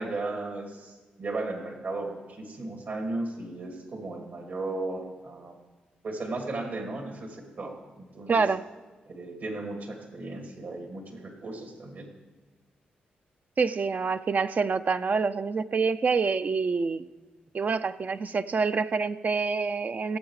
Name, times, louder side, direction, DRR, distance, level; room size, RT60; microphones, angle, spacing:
voice 1, 0.0-5.6 6.0-8.4 9.1-12.1, right 2 dB, 70° right, 4 dB, 2.2 m, -35 dB
voice 2, 8.3-8.6 13.6-17.1 17.5-20.2, right 4 dB, 50° right, 10 dB, 0.5 m, -26 dB
17.0 x 7.2 x 4.8 m, 1.3 s
supercardioid pair, 50°, 4 cm